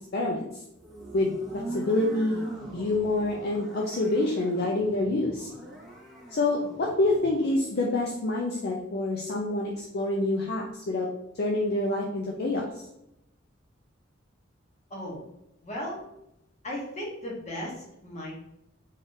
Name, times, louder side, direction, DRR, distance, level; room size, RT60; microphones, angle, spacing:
voice 1, 0.1-0.5 1.1-1.3 1.7-2.5 2.7-5.5 6.3-11.1 11.4-12.8, left 2 dB, 55° left, -2 dB, 0.5 m, -27 dB
sound 1, 0.7-7.6, right 1 dB, ahead, 0.8 m, -43 dB
voice 2, 14.9-15.2 15.6-16.0 16.6-18.3, left 1 dB, 35° left, -3 dB, 1.1 m, -36 dB
3.6 x 3.6 x 2.6 m, 0.85 s
head